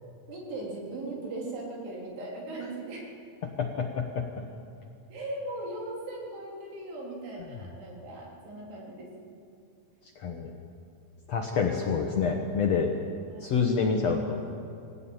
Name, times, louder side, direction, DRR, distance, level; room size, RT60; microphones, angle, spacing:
voice 1, 0.3-3.1 5.1-9.1 13.3-13.5, right 2 dB, 90° right, -2 dB, 5.7 m, -38 dB
voice 2, 3.4-4.3 10.1-10.5 11.3-12.9 13.4-14.3, left 5 dB, 65° left, 2 dB, 1.7 m, -27 dB
22.5 x 17.0 x 8.9 m, 2.6 s
omnidirectional pair, 4.6 m